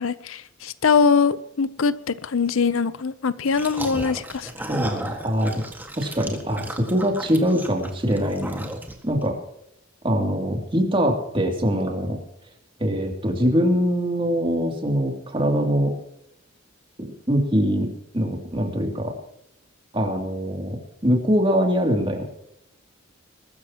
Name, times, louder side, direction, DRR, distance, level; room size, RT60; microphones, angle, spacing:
voice 1, 0.0-4.5, left 5 dB, 80° left, 0.6 m, -22 dB
sound 1, 3.5-9.2, right 1 dB, 10° right, 1.7 m, -35 dB
voice 2, 4.7-5.6 6.0-8.7 9.0-9.4 10.0-12.2 12.8-15.9 17.0-17.9 18.1-19.1 19.9-22.2, equal, 25° right, 2.7 m, -23 dB
21.5 x 13.5 x 2.9 m
head